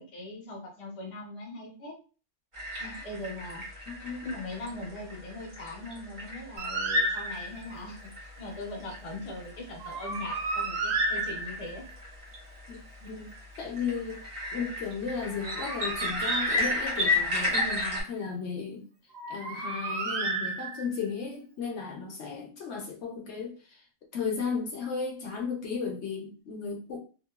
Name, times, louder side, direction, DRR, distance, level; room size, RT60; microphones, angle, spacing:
voice 1, 0.0-2.0 2.8-3.6 4.2-11.9, left 2 dB, 35° left, 0 dB, 0.6 m, -40 dB
sound 1, 2.5-18.0, left 2 dB, 30° right, 0.8 m, -34 dB
voice 2, 3.9-4.2 12.7-13.3 13.6-14.2 14.5-18.9 19.3-23.6 24.1-27.0, left 5 dB, 70° left, 0 dB, 0.9 m, -35 dB
Bird, 6.6-7.7 9.8-11.9 15.3-17.2 19.1-21.1, right 2 dB, 60° right, 0.4 m, -32 dB
2.8 x 2.3 x 2.2 m, 0.37 s
omnidirectional pair, 1.3 m